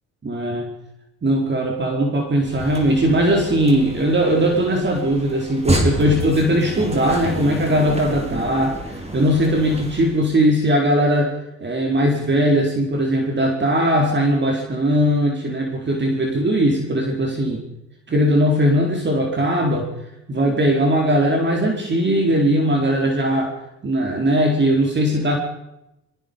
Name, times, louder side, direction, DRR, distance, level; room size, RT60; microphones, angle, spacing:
voice 1, 0.2-0.7 1.2-11.3 11.6-17.6 18.1-19.9 20.3-23.5 23.8-25.3, equal, 35° right, 1 dB, 4.5 m, -19 dB
sound 1, 2.4-10.3, right 1 dB, 20° right, 4.9 m, -29 dB
23.0 x 22.5 x 5.4 m, 0.87 s
cardioid pair, 90°, 30 cm